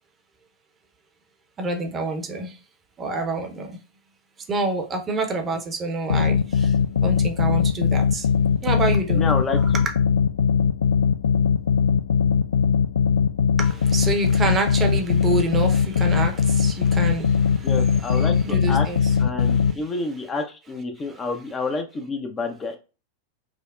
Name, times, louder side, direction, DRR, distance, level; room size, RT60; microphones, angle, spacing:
voice 1, 1.6-2.6 3.0-3.8 4.5-6.7 7.0-8.3 8.6-9.3 13.6-17.7 18.0-19.1 19.4-19.8 21.0-21.2, right 2 dB, 25° right, 0.7 m, -27 dB
sound 1, 6.1-19.7, left 7 dB, 65° left, 0.3 m, -20 dB
voice 2, 9.1-9.6 17.6-18.9 19.2-22.8, left 3 dB, 20° left, 0.6 m, -29 dB
4.9 x 2.1 x 2.4 m
figure-of-eight pair, 90°, 0 cm